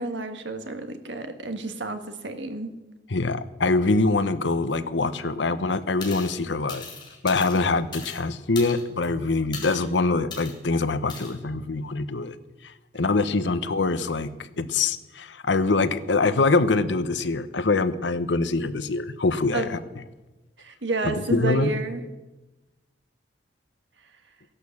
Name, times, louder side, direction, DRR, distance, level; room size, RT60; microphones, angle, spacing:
voice 1, 0.0-2.7 19.5-19.7 20.6-22.0, right 3 dB, 85° right, 7 dB, 1.6 m, -30 dB
voice 2, 3.1-6.9 7.2-12.3 12.9-14.3 14.6-19.8 21.0-21.7, left 3 dB, 90° left, 12 dB, 0.9 m, -24 dB
sound 1, 6.0-6.4 6.7-8.2 8.6-9.1 9.5-9.8 10.3-10.5 11.1-11.3, left 5 dB, 25° left, 3.9 m, -38 dB
16.5 x 11.0 x 7.1 m, 1.1 s
head